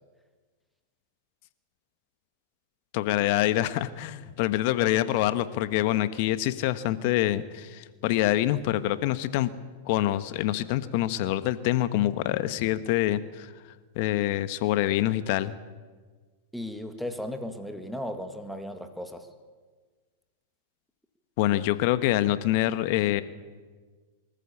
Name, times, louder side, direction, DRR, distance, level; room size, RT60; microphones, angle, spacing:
voice 1, 2.9-9.5 9.9-13.5 13.9-15.5 21.4-23.2, left 14 dB, 55° left, 13 dB, 1.2 m, -26 dB
voice 2, 16.5-19.3, left 1 dB, ahead, 7 dB, 1.9 m, -36 dB
23.5 x 14.0 x 8.5 m, 1.4 s
hypercardioid pair, 110°, 0 cm